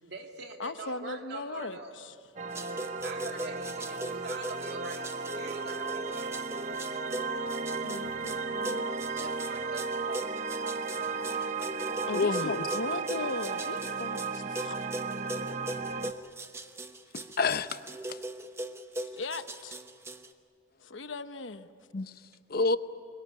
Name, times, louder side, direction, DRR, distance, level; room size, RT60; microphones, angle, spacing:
voice 1, 0.0-2.1 3.0-6.7 9.1-10.5, right 3 dB, 60° right, 3 dB, 2.7 m, -45 dB
voice 2, 0.6-1.8 7.8-8.9 12.1-14.9 19.0-19.8 20.8-21.7, left 3 dB, 85° left, 10 dB, 1.1 m, -38 dB
sound 1, 2.4-16.1, right 4 dB, 40° right, 0.9 m, -34 dB
sound 2, 2.5-20.3, right 1 dB, 15° right, 1.0 m, -40 dB
voice 3, 12.1-12.7 17.1-18.2 21.9-22.1 22.5-22.8, left 3 dB, 55° left, 12 dB, 0.8 m, -29 dB
26.0 x 22.5 x 9.6 m, 2.3 s
head